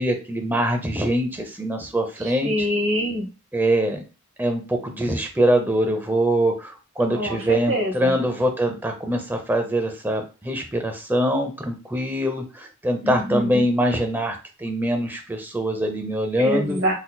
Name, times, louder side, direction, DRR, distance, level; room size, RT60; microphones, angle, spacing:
voice 1, 0.0-2.5 3.5-4.0 4.4-16.8, right 1 dB, 10° right, 4 dB, 0.5 m, -23 dB
voice 2, 2.2-3.3 7.1-8.1 13.0-13.7 16.4-16.9, equal, 65° right, 2 dB, 1.1 m, -25 dB
3.8 x 2.9 x 2.2 m, 0.32 s
head